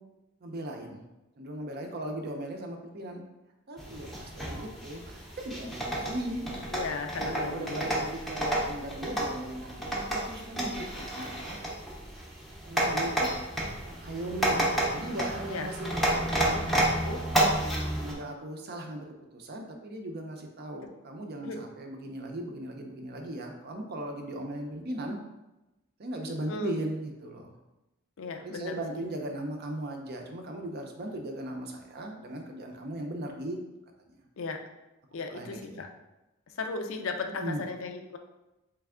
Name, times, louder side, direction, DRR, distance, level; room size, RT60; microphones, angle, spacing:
voice 1, 0.4-1.0 1.4-3.2 3.7-6.5 7.3-11.6 12.7-13.3 13.9-17.2 18.0-19.1 19.3-25.2 26.0-27.6 28.4-33.6 35.3-35.8 37.3-37.6, right 1 dB, 45° right, 3 dB, 0.5 m, -38 dB
sound 1, 3.8-18.1, right 1 dB, ahead, 0.6 m, -31 dB
voice 2, 6.7-7.9 15.5-15.7 15.9-16.2 21.4-21.6 26.5-26.8 28.2-29.0 34.4-34.6 35.1-35.9 36.6-38.2, left 4 dB, 65° left, 5 dB, 0.5 m, -36 dB
3.3 x 3.3 x 3.6 m, 0.98 s
head